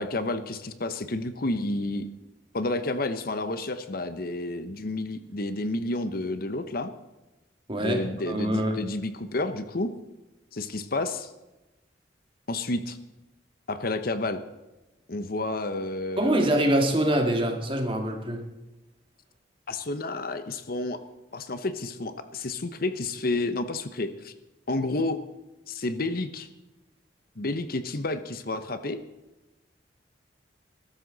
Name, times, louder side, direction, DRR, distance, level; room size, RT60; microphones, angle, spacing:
voice 1, 0.0-2.1 2.5-6.9 7.8-9.9 10.5-11.3 12.5-13.0 13.7-14.4 15.1-16.3 19.7-21.0 21.3-24.3 24.7-25.2 25.7-26.5 27.4-29.0, left 2 dB, 55° left, 10 dB, 1.0 m, -30 dB
voice 2, 7.7-8.0 8.3-8.8 16.2-18.4, right 1 dB, 30° right, 3 dB, 2.3 m, -24 dB
20.5 x 12.5 x 4.1 m, 1.0 s
head